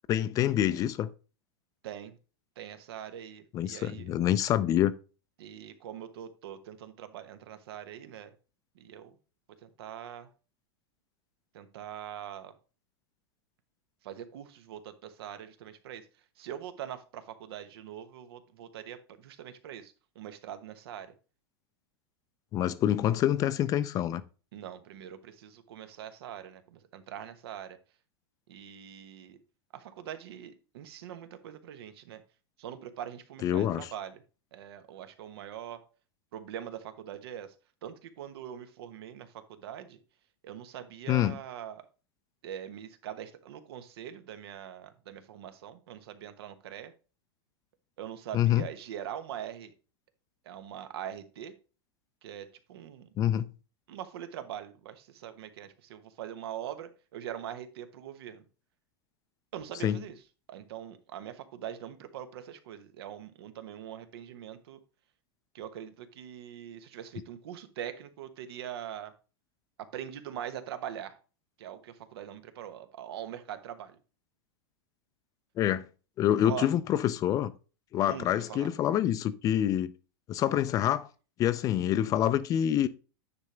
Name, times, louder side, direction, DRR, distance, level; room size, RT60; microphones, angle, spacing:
voice 1, 0.1-1.1 3.5-4.9 22.5-24.2 33.4-33.9 41.1-41.4 48.3-48.6 53.2-53.5 59.8-60.0 75.6-75.9 76.2-77.5 77.9-79.9 80.3-81.1 81.4-82.9, left 11 dB, 25° left, 0.5 m, -26 dB
voice 2, 1.8-2.2 2.6-4.1 5.4-8.3 8.7-9.1 9.6-10.3 11.5-12.5 14.0-16.1 16.4-21.1 24.5-27.8 28.5-29.4 29.7-32.2 32.6-34.1 34.5-35.8 36.3-37.5 37.8-40.0 40.4-41.9 42.4-46.9 48.0-49.7 50.4-51.5 52.2-53.1 53.9-58.4 59.5-60.2 60.5-64.8 65.5-69.1 69.8-71.2 71.6-74.0 76.4-76.7 78.1-78.7, right 10 dB, 70° right, 1.1 m, -42 dB
9.5 x 3.4 x 5.1 m
supercardioid pair, 145°, 13 cm